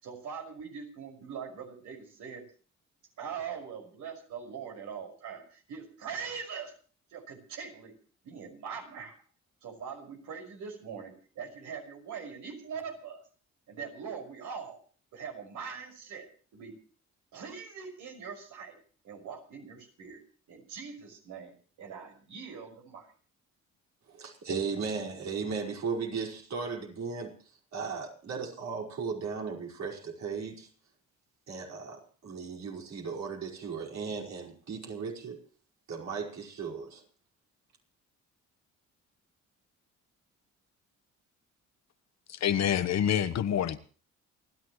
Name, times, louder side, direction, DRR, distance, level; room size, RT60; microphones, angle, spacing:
voice 1, 0.0-2.4 3.2-6.7 7.1-7.9 8.2-9.1 9.6-13.2 13.7-14.8 15.1-16.8 17.3-18.8 19.0-20.2 20.5-21.5 21.8-23.1, right 6 dB, 80° right, 6.0 m, -42 dB
voice 2, 24.1-27.3 27.7-30.7 31.5-35.4 35.9-37.0, right 5 dB, 60° right, 5.3 m, -36 dB
voice 3, 42.3-43.8, left 9 dB, 60° left, 1.2 m, -27 dB
29.0 x 11.0 x 3.2 m
cardioid pair, 90°, 30 cm